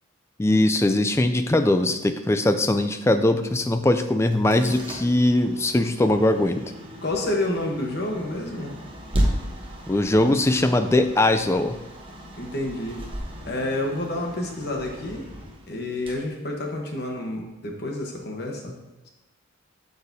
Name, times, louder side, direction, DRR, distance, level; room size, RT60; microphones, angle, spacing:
voice 1, 0.4-6.7 9.9-11.8, left 1 dB, 15° left, 8 dB, 0.3 m, -21 dB
sound 1, 4.2-17.1, equal, 25° right, 0.9 m, -34 dB
voice 2, 7.0-8.8 12.4-13.0 13.4-15.3 15.7-18.7, left 1 dB, 50° left, 1 dB, 1.1 m, -29 dB
8.1 x 6.8 x 2.7 m, 1.1 s
head